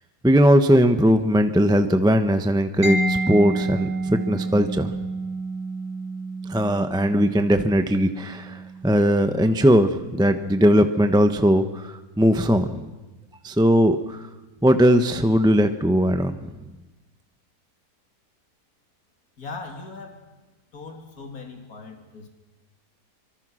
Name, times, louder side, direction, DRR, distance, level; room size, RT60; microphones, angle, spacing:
voice 1, 0.2-4.9 6.5-12.8 13.4-14.2 14.6-16.3, equal, 5° right, 8 dB, 0.6 m, -19 dB
Mallet percussion, 2.8-10.4, right 2 dB, 65° right, 2.9 m, -30 dB
voice 2, 19.4-20.2 20.7-22.3, left 4 dB, 60° left, 3 dB, 3.2 m, -39 dB
25.5 x 24.5 x 6.3 m, 1.1 s
omnidirectional pair, 1.8 m